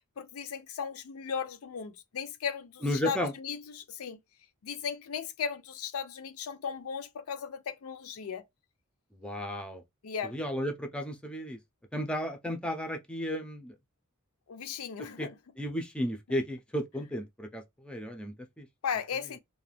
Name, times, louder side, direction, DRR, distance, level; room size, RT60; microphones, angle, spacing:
voice 1, 0.2-4.2 4.6-8.4 10.0-10.4 14.5-15.4 18.8-19.4, left 7 dB, 80° left, 0.5 m, -36 dB
voice 2, 2.8-3.3 9.2-9.8 10.2-11.6 11.9-13.7 15.2-15.3 15.6-18.7, equal, 5° left, 0.4 m, -34 dB
2.4 x 2.1 x 3.2 m
head